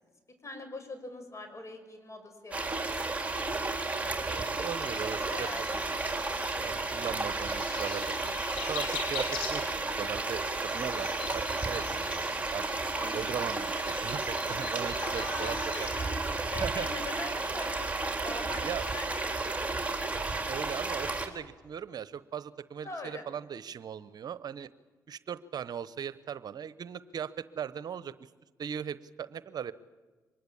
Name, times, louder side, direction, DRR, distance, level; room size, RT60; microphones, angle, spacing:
voice 1, 0.4-3.2 3.7-4.5 5.3-5.6 6.4-7.1 13.0-13.4 15.0-19.9 22.8-23.2, left 2 dB, 40° left, 7 dB, 6.1 m, -43 dB
sound 1, 2.5-21.3, right 3 dB, 15° right, 3.9 m, -33 dB
voice 2, 4.3-5.5 6.6-8.4 8.7-12.7 13.1-15.9 16.6-16.9 18.6-19.0 20.5-24.7 25.1-28.3 28.6-29.7, right 8 dB, 60° right, 16 dB, 0.9 m, -38 dB
sound 2, 4.7-16.1, left 5 dB, 80° left, 6.3 m, -43 dB
24.5 x 21.0 x 8.7 m, 1.3 s
supercardioid pair, 55°, 8 cm